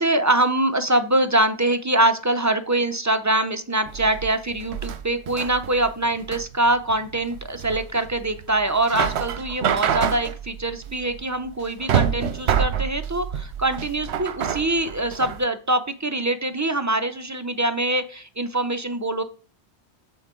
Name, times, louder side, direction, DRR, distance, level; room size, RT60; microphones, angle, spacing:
voice 1, 0.0-19.2, right 1 dB, 25° right, 9 dB, 0.4 m, -24 dB
sound 1, 3.9-15.4, right 8 dB, 75° right, 0.9 m, -27 dB
8.4 x 6.9 x 3.7 m, 0.38 s
omnidirectional pair, 1.1 m